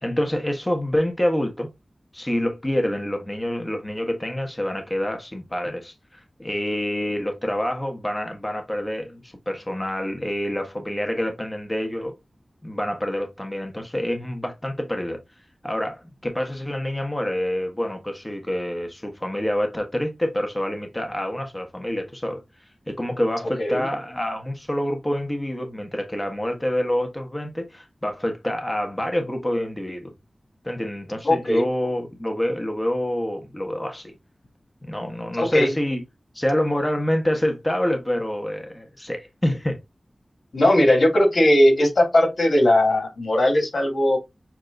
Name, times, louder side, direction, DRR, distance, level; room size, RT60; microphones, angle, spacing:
voice 1, 0.0-1.7 2.1-12.1 12.6-15.2 15.6-22.4 22.9-30.1 30.6-34.1 34.8-36.0 36.3-39.8, left 1 dB, 20° left, 1.2 m, -27 dB
voice 2, 31.2-31.6 35.4-35.7 40.5-44.2, left 1 dB, 75° left, 2.6 m, -18 dB
7.2 x 2.8 x 2.6 m
wide cardioid pair, 75°, 0 cm